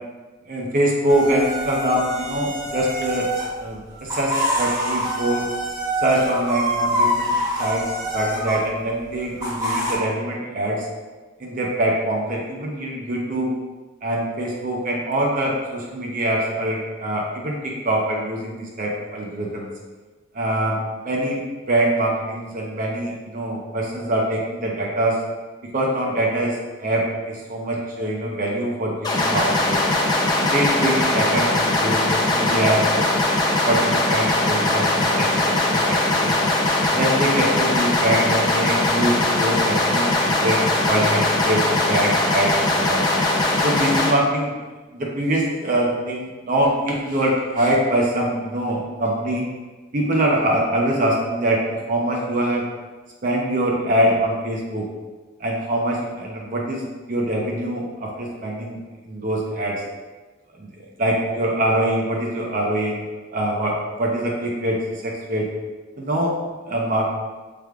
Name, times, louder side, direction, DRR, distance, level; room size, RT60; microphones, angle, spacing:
voice 1, 0.5-3.3 3.6-5.5 6.0-7.8 8.1-10.9 11.4-13.5 14.0-19.7 20.3-20.8 21.0-21.4 21.7-25.2 25.7-29.8 30.4-33.1 33.7-36.3 36.9-40.6 40.9-41.6 41.9-43.0 43.6-44.5 44.9-49.5 49.9-52.6 53.2-54.9 55.4-56.8 57.1-58.8 59.0-59.8 60.6-60.7 61.0-63.0 63.3-64.8 65.0-65.5 66.0-66.3 66.7-67.2, right 1 dB, 40° right, -2 dB, 0.5 m, -23 dB
sound 1, 1.1-3.5 3.9-8.6 9.4-9.9, equal, 20° right, 0.9 m, -25 dB
sound 2, 29.0-44.1, left 2 dB, 20° left, 0.5 m, -20 dB
4.6 x 3.3 x 2.3 m, 1.3 s
head